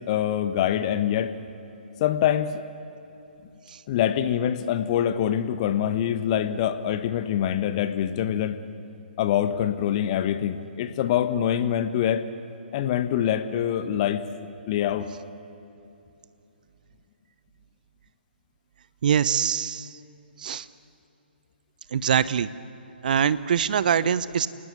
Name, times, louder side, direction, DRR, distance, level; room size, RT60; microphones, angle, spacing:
voice 1, 0.0-1.4 2.0-2.6 3.9-8.6 9.2-12.3 12.7-14.2 14.7-15.1, left 10 dB, 35° left, 11 dB, 1.2 m, -25 dB
voice 2, 19.0-19.9 20.4-20.6 21.9-22.5 23.0-24.5, right 8 dB, 50° right, 17 dB, 0.8 m, -23 dB
28.0 x 19.0 x 8.4 m, 2.9 s
figure-of-eight pair, 130°, 6 cm